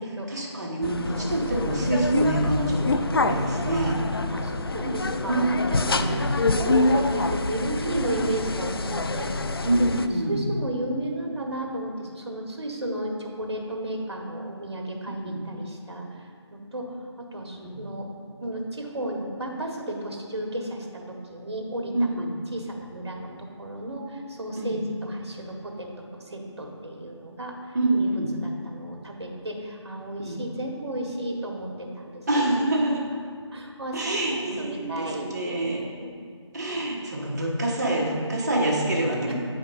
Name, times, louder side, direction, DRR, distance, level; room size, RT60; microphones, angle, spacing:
voice 1, 0.3-4.0 5.3-6.3 9.6-10.5 15.2-15.4 17.5-17.8 21.9-22.3 24.5-24.8 27.7-28.4 30.1-30.4 32.3-33.1 33.9-35.9 36.5-39.3, right 1 dB, 35° right, -3 dB, 1.3 m, -26 dB
sound 1, 0.8-10.1, left 3 dB, 55° left, 0.4 m, -26 dB
voice 2, 4.3-5.4 5.7-9.3 9.9-16.2 16.5-18.1 18.4-22.2 22.5-24.8 25.0-27.5 27.9-28.0 28.4-32.2 33.5-35.6 36.0-36.2 36.7-36.8 39.3-39.4, right 1 dB, 60° right, 1 dB, 1.4 m, -33 dB
8.9 x 5.0 x 3.9 m, 2.1 s
figure-of-eight pair, 160°, 15 cm